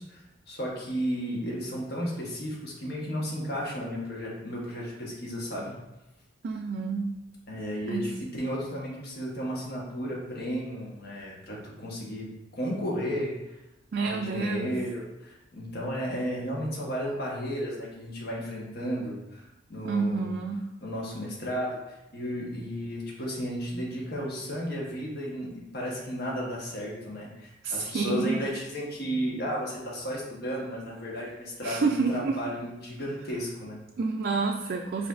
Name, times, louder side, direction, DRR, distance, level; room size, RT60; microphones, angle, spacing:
voice 1, 0.0-5.7 7.5-12.3 12.5-13.5 14.0-20.3 20.8-33.8, equal, 55° left, -3 dB, 1.2 m, -33 dB
voice 2, 6.4-7.1 7.9-8.1 13.9-14.7 19.8-20.6 27.6-28.4 31.6-32.4 34.0-35.1, right 4 dB, 50° right, 2 dB, 0.3 m, -28 dB
5.0 x 4.2 x 2.5 m, 0.94 s
head